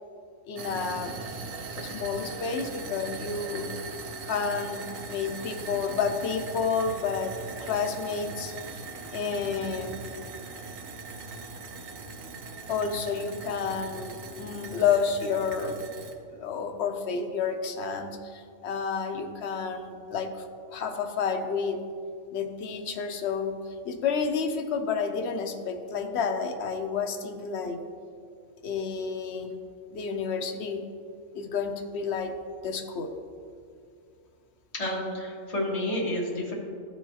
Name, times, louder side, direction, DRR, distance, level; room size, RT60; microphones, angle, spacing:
voice 1, 0.5-1.1 1.8-3.8 4.2-8.6 9.1-10.0 12.7-15.8 16.3-20.4 20.7-21.8 22.3-23.6 23.8-27.8 28.6-29.6 29.9-30.8 31.3-32.3 32.6-33.1, left 6 dB, 65° left, 5 dB, 0.9 m, -30 dB
sound 1, 0.6-16.1, right 4 dB, 80° right, 1.1 m, -40 dB
voice 2, 34.7-36.5, left 1 dB, 30° left, -4 dB, 1.4 m, -30 dB
13.5 x 4.6 x 2.8 m, 2.3 s
omnidirectional pair, 1.3 m